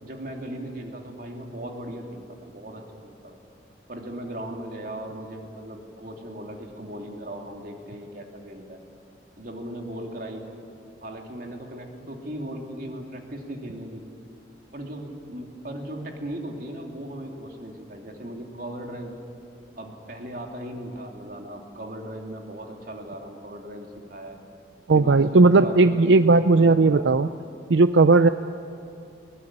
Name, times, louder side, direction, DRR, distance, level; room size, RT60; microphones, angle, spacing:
voice 1, 0.0-3.4 3.9-8.8 9.4-10.5 11.0-14.1 14.7-19.1 19.8-24.4 24.9-27.1, right 1 dB, 50° right, 2 dB, 3.0 m, -37 dB
voice 2, 24.9-27.3 27.7-28.3, right 3 dB, 85° right, 11 dB, 0.5 m, -16 dB
21.5 x 20.0 x 9.9 m, 2.5 s
head